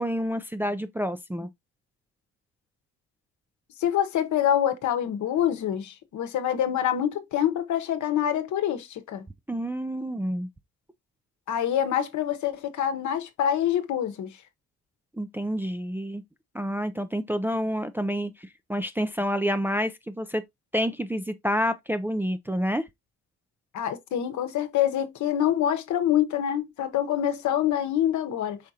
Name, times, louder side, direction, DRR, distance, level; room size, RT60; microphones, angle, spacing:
voice 1, 0.0-1.5 9.5-10.5 15.2-16.2 16.5-20.4 20.7-22.8, equal, 5° right, 0.4 m, -28 dB
voice 2, 3.8-9.2 11.5-14.4 23.7-28.6, left 10 dB, 70° left, 0.9 m, -26 dB
5.0 x 3.6 x 2.7 m
cardioid pair, 90°, 30 cm